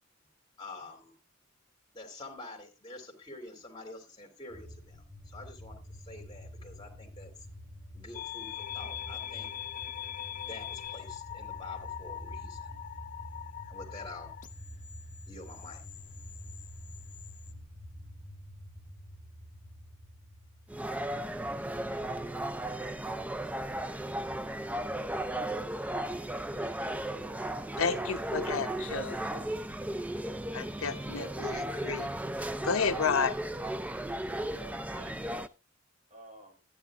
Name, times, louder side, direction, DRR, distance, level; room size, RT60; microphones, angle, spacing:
voice 1, 0.6-1.1 1.9-7.3 7.9-9.5 10.4-12.8 13.6-14.3 15.3-15.8, left 2 dB, 20° left, 3.0 m, -47 dB
sound 1, 4.5-21.3, equal, 55° right, 3.9 m, -48 dB
sound 2, 8.1-17.5, left 11 dB, 40° left, 0.6 m, -42 dB
sound 3, 20.7-35.5, right 1 dB, 5° right, 0.4 m, -35 dB
voice 2, 27.8-29.5 30.5-32.1 32.6-33.4, left 5 dB, 85° left, 0.9 m, -31 dB
voice 3, 31.1-31.8 34.4-35.5 36.1-36.6, right 1 dB, 40° right, 4.9 m, -51 dB
13.5 x 9.9 x 2.5 m
head